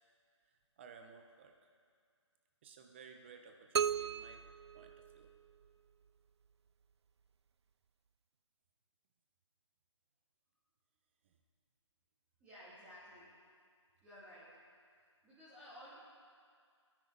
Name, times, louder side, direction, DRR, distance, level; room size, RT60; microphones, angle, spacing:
voice 1, 0.5-1.7 2.6-4.4 4.7-5.3 11.2-11.4, right 5 dB, 25° right, 4 dB, 1.1 m, -57 dB
sound 1, 3.7-5.7, right 7 dB, 60° right, 0.4 m, -37 dB
voice 2, 12.4-13.4 14.0-14.6 15.2-16.0, equal, 10° right, -12 dB, 2.9 m, -55 dB
29.0 x 11.0 x 4.1 m, 2.1 s
hypercardioid pair, 165°, 16 cm